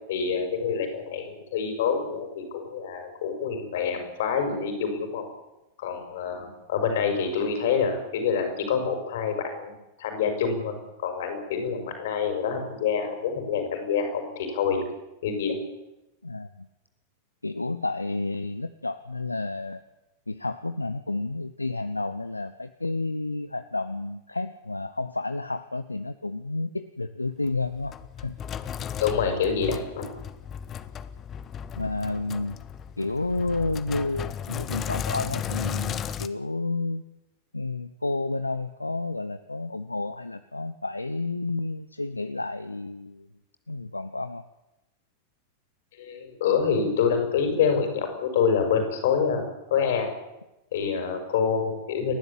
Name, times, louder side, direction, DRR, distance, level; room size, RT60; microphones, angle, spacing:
voice 1, 0.1-5.2 5.8-14.8 15.2-15.6 29.0-30.1 46.0-49.4 49.7-50.1 50.7-52.1, left 6 dB, 55° left, 5 dB, 6.1 m, -26 dB
voice 2, 16.2-16.7 17.4-19.8 20.3-28.4 31.8-32.6 33.0-37.0 37.5-43.3 43.7-44.4, left 2 dB, 85° left, 12 dB, 0.8 m, -31 dB
Sink (filling or washing), 27.4-36.3, left 8 dB, 30° left, 1.2 m, -35 dB
29.5 x 12.0 x 8.6 m, 0.96 s
figure-of-eight pair, 90°, 0 cm